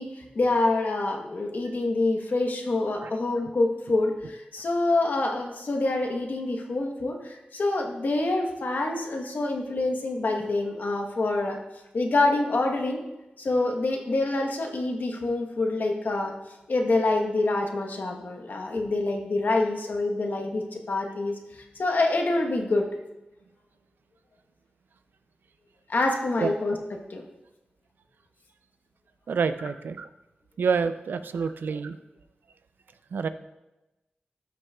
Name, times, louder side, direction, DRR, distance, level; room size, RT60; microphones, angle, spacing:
voice 1, 0.0-11.6 11.9-13.0 13.4-16.3 16.7-22.9 25.9-27.2, left 2 dB, 70° left, 3 dB, 1.1 m, -26 dB
voice 2, 29.3-30.1 30.6-32.0 33.1-33.3, right 5 dB, 90° right, 11 dB, 0.4 m, -27 dB
12.5 x 6.0 x 2.3 m, 0.99 s
cardioid pair, 55°, 3 cm